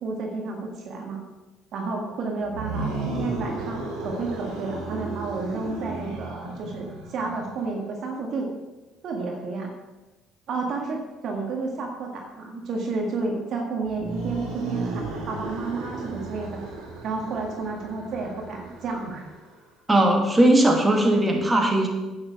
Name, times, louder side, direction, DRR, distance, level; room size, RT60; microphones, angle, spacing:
voice 1, 0.0-1.2 1.7-8.5 9.0-9.7 10.5-16.6 17.0-19.3, right 3 dB, 55° right, 1 dB, 1.7 m, -31 dB
sound 1, 2.4-7.6 13.8-19.5, right 3 dB, 75° right, 2.7 m, -34 dB
voice 2, 19.9-21.9, right 1 dB, 20° right, 1 dB, 2.4 m, -19 dB
10.5 x 8.7 x 4.8 m, 1.1 s
hypercardioid pair, 55°, 0 cm